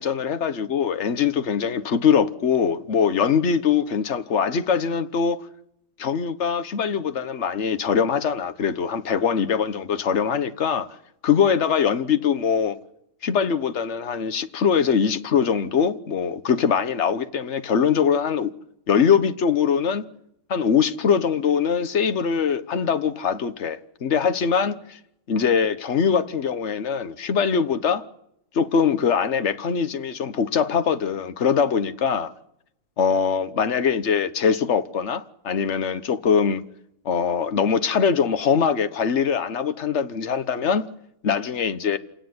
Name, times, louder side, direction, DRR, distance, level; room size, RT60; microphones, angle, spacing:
voice 1, 0.0-5.4 6.0-10.9 11.2-12.8 13.2-18.5 18.9-20.0 20.5-25.0 25.3-28.0 28.5-32.3 33.0-36.6 37.0-40.8 41.2-42.0, left 7 dB, 50° left, 1.4 m, -22 dB
27.5 x 17.5 x 9.6 m
omnidirectional pair, 1.6 m